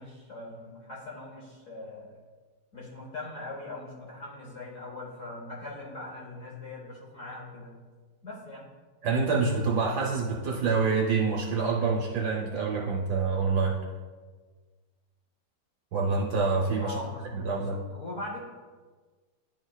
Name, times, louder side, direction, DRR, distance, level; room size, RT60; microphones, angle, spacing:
voice 1, 0.0-2.2 2.7-7.7 8.2-8.7 16.8-18.4, left 2 dB, 50° left, -4 dB, 1.0 m, -41 dB
voice 2, 9.0-13.8 15.9-17.0 17.3-17.8, right 4 dB, 65° right, -2 dB, 1.0 m, -26 dB
11.0 x 4.4 x 2.3 m, 1.4 s
omnidirectional pair, 2.4 m